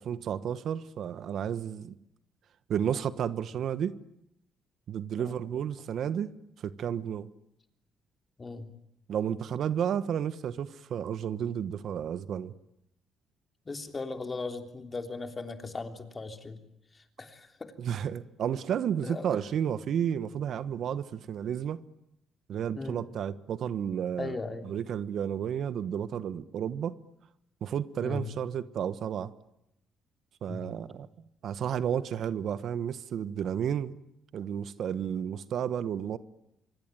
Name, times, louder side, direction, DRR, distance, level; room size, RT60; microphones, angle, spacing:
voice 1, 0.0-1.9 2.7-3.9 4.9-7.3 9.1-12.5 17.8-21.8 22.5-24.3 24.6-27.0 27.6-29.3 30.4-31.1 31.4-34.0 34.3-36.2, right 9 dB, 65° right, 1.2 m, -32 dB
voice 2, 13.7-16.6 17.2-17.5 19.0-19.2 22.7-23.0 24.2-24.7 28.0-28.3 30.5-30.7, left 3 dB, 25° left, 3.3 m, -37 dB
25.0 x 24.5 x 9.3 m
cardioid pair, 95°, 0 cm